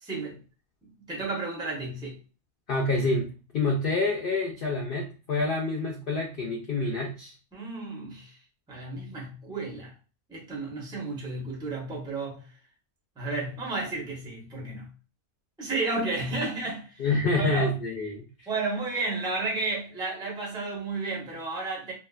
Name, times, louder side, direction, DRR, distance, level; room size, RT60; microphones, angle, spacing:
voice 1, 0.0-0.4 0.8-2.2 7.5-8.4 8.7-9.9 10.3-12.5 13.2-14.9 15.6-17.0 17.3-17.7 18.5-21.9, right 3 dB, 5° right, 0.4 m, -32 dB
voice 2, 2.7-7.4 17.0-18.5, left 2 dB, 70° left, 0.5 m, -27 dB
2.7 x 2.3 x 2.2 m
omnidirectional pair, 1.4 m